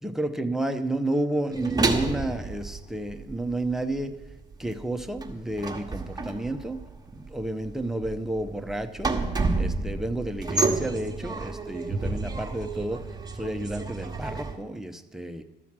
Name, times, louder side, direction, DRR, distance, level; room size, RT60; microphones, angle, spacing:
voice 1, 0.0-4.1 4.6-6.8 7.1-9.2 9.6-13.0 13.3-15.4, right 1 dB, ahead, 6 dB, 0.9 m, -31 dB
sound 1, 1.5-3.7 4.0-14.6, right 3 dB, 20° right, 1.4 m, -30 dB
12.5 x 7.1 x 6.1 m, 1.1 s
cardioid pair, 90°, 20 cm